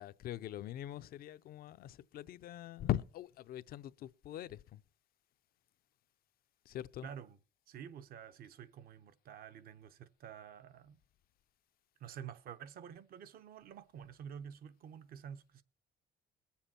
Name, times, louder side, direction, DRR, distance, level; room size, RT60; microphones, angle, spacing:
voice 1, 0.0-4.8 6.7-7.1, left 12 dB, 60° left, 0.6 m, -41 dB
voice 2, 7.0-7.4 7.7-11.0 12.0-15.6, right 8 dB, 60° right, 0.9 m, -49 dB
21.0 x 7.2 x 4.3 m
cardioid pair, 110°, 17 cm